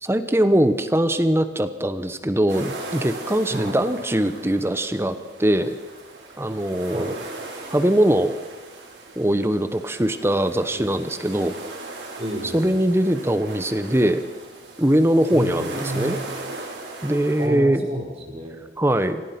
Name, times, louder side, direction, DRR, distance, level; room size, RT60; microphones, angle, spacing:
voice 1, 0.0-5.8 6.4-7.2 7.7-8.3 9.2-11.5 12.5-14.2 14.8-16.2 17.0-17.8 18.8-19.2, right 1 dB, 15° right, 11 dB, 0.9 m, -21 dB
sound 1, 2.5-17.5, right 2 dB, 80° right, 5.5 m, -38 dB
voice 2, 12.2-12.8 15.3-16.2 17.4-18.6, right 1 dB, 35° right, 0 dB, 4.8 m, -31 dB
26.0 x 18.0 x 5.9 m, 1.2 s
head